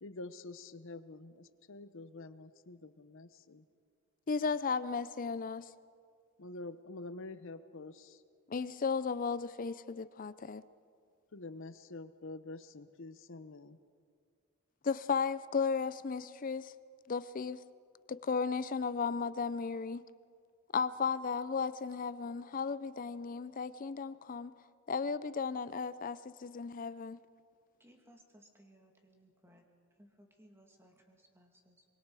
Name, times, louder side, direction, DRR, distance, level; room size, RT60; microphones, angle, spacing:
voice 1, 0.0-3.6 6.4-8.2 11.3-13.8, left 2 dB, 60° left, 0.8 m, -47 dB
voice 2, 4.3-5.7 8.5-10.6 14.8-16.7 17.1-17.6 18.1-20.0 20.7-24.5 24.9-27.2, left 5 dB, 40° left, 0.5 m, -35 dB
voice 3, 27.8-29.7 29.9-31.9, equal, 10° right, 2.1 m, -62 dB
24.0 x 23.5 x 4.8 m
head